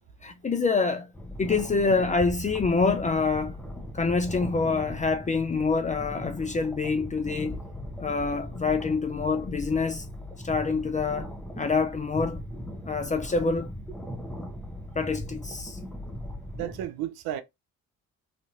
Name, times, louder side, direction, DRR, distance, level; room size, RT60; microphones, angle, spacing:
voice 1, 0.2-1.1 1.4-3.5 3.9-7.6 8.0-10.1 10.4-11.3 11.6-12.4 12.8-13.7 15.0-15.8, left 4 dB, 20° left, 0.3 m, -26 dB
sound 1, 1.1-16.9, equal, 5° left, 0.8 m, -39 dB
voice 2, 16.5-17.4, right 12 dB, 60° right, 0.5 m, -33 dB
2.8 x 2.5 x 2.4 m
hypercardioid pair, 45°, 41 cm